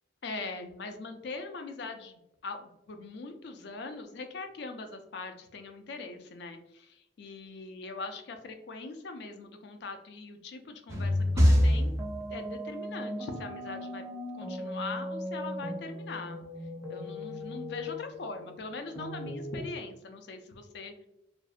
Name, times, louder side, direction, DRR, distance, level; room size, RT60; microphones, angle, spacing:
voice 1, 0.2-11.9 12.2-14.0 14.3-16.4 16.9-21.1, left 3 dB, 60° left, 6 dB, 0.4 m, -41 dB
sound 1, 10.9-19.7, equal, 15° right, 0.4 m, -31 dB
2.5 x 2.1 x 2.3 m, 0.82 s
head